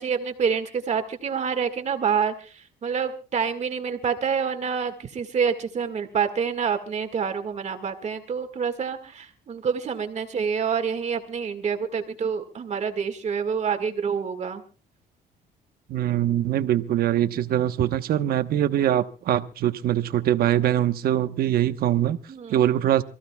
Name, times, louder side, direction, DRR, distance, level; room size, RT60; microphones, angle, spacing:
voice 1, 0.0-14.6 22.3-22.7, right 6 dB, 40° right, 7 dB, 1.9 m, -27 dB
voice 2, 15.9-22.2 22.5-23.0, right 11 dB, 65° right, 10 dB, 1.1 m, -23 dB
28.0 x 15.0 x 2.3 m, 0.35 s
cardioid pair, 110°, 17 cm